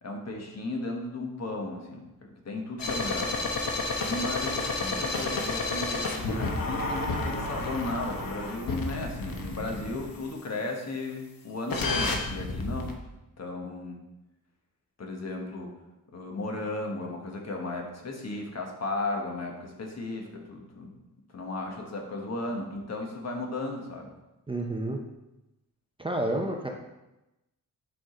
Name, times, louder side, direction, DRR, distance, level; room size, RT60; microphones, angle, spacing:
voice 1, 0.0-2.1 2.4-3.3 4.0-6.1 6.4-13.0 13.4-14.0 15.0-15.7 16.1-20.9 21.3-24.1, left 2 dB, 50° left, 1 dB, 1.2 m, -35 dB
sound 1, 2.8-10.2 11.7-12.9, left 2 dB, 80° left, 1.0 m, -31 dB
voice 2, 24.5-25.0 26.0-26.7, right 1 dB, 15° right, 1 dB, 0.6 m, -29 dB
7.9 x 4.9 x 3.8 m, 0.97 s
wide cardioid pair, 155°, 34 cm